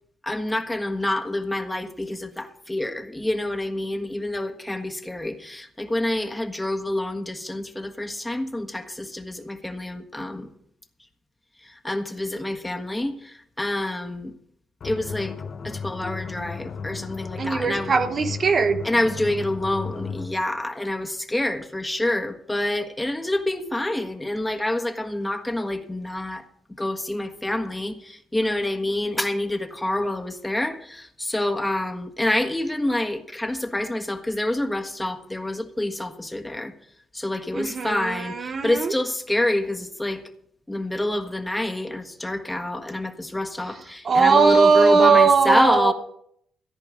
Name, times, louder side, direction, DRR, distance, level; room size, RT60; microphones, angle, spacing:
voice 1, 0.2-10.5 11.6-14.3 14.8-15.4 15.6-17.9 18.8-26.4 26.8-36.7 37.1-40.2 40.7-45.9, left 1 dB, 10° left, 1.5 m, -27 dB
sound 1, 14.8-20.5, left 6 dB, 50° left, 1.0 m, -35 dB
voice 2, 17.4-18.8 37.5-38.9 44.0-45.9, right 5 dB, 45° right, 0.9 m, -19 dB
14.5 x 10.5 x 5.0 m
cardioid pair, 90°, 0 cm